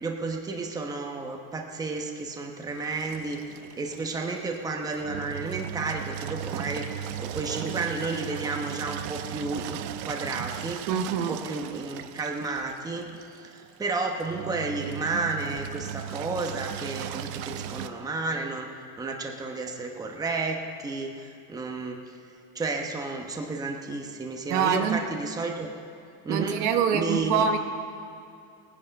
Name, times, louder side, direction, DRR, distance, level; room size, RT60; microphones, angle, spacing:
voice 1, 0.0-3.4 3.8-6.9 7.2-10.8 11.3-18.7 19.0-22.1 22.5-25.7 26.2-27.4, right 3 dB, 10° right, 2 dB, 0.9 m, -32 dB
Engine, 2.7-17.9, right 10 dB, 75° right, 0.8 m, -37 dB
voice 2, 10.9-11.4 24.5-25.0 26.3-27.6, right 7 dB, 55° right, 6 dB, 1.0 m, -25 dB
19.0 x 10.0 x 5.4 m, 2.5 s
cardioid pair, 155°, 35 cm